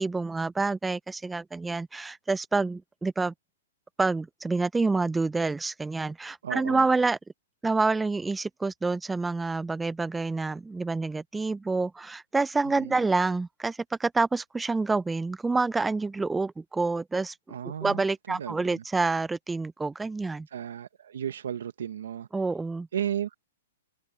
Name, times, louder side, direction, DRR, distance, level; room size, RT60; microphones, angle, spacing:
voice 1, 0.0-3.3 4.0-7.2 7.6-17.4 17.8-20.5 22.3-22.9, right 3 dB, 5° right, 0.3 m, -27 dB
voice 2, 6.4-6.9 12.8-13.0 17.5-18.8 20.5-22.3 22.9-23.3, right 9 dB, 80° right, 1.0 m, -34 dB
hypercardioid pair, 160°, 0 cm